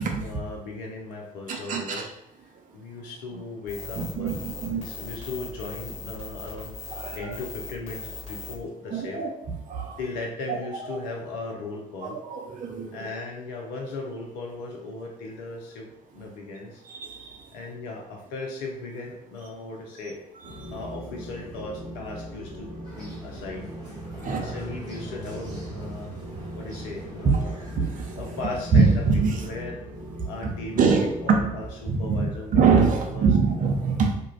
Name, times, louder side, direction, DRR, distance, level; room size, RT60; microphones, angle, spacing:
voice 1, 0.2-2.1 2.7-6.8 7.1-9.2 10.0-12.2 12.9-16.8 17.5-20.2 20.7-23.7 24.2-26.1 26.5-27.5 28.2-29.8 30.2-32.6 33.0-33.3, left 3 dB, 70° left, 0.5 m, -37 dB
voice 2, 1.5-2.0 3.9-4.8 6.9-7.4 8.9-10.0 10.5-10.6 10.9-11.0 12.0-13.1 16.9-17.3 20.5-20.7 24.2-24.6 27.2-27.4 27.8-28.1 28.7-29.4 30.8-31.5 31.9-34.1, right 5 dB, 50° right, 0.5 m, -24 dB
sound 1, 3.7-8.5, left 4 dB, 40° left, 1.4 m, -39 dB
sound 2, 20.4-31.7, equal, 90° right, 0.7 m, -40 dB
sound 3, 22.8-29.5, right 2 dB, 25° right, 1.2 m, -43 dB
2.4 x 2.2 x 3.0 m
figure-of-eight pair, 40°, 18 cm